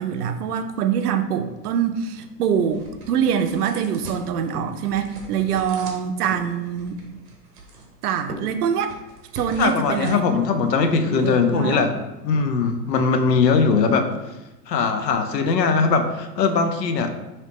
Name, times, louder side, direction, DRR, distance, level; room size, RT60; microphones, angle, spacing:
voice 1, 0.0-7.0 8.0-9.0 9.3-10.2 11.1-11.8, right 8 dB, 70° right, 8 dB, 0.5 m, -24 dB
sound 1, 1.7-11.8, right 2 dB, 30° right, 0.7 m, -42 dB
voice 2, 9.6-11.9 12.2-14.1 14.7-17.1, left 5 dB, 80° left, 7 dB, 0.6 m, -20 dB
3.1 x 2.8 x 2.9 m, 1.0 s
hypercardioid pair, 100°, 49 cm